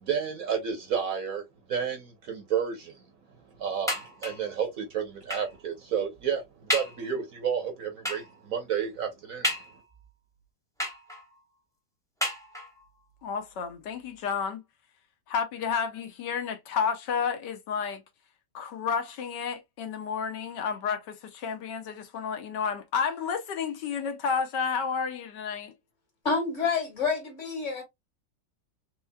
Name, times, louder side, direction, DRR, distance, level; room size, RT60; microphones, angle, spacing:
voice 1, 0.0-3.0 3.6-9.5, right 7 dB, 60° right, 1.1 m, -31 dB
sound 1, 3.9-4.5 5.3-5.6 6.1-6.2 6.7-7.1 8.0-8.4 9.4-10.1 10.8-11.4 12.2-12.9 13.7-13.8 14.1-14.2, left 1 dB, 5° left, 0.5 m, -32 dB
voice 2, 13.2-14.6 15.3-18.0 18.5-25.7, left 6 dB, 75° left, 1.3 m, -31 dB
voice 3, 26.2-27.8, left 4 dB, 45° left, 1.6 m, -28 dB
4.5 x 3.1 x 2.2 m
omnidirectional pair, 2.0 m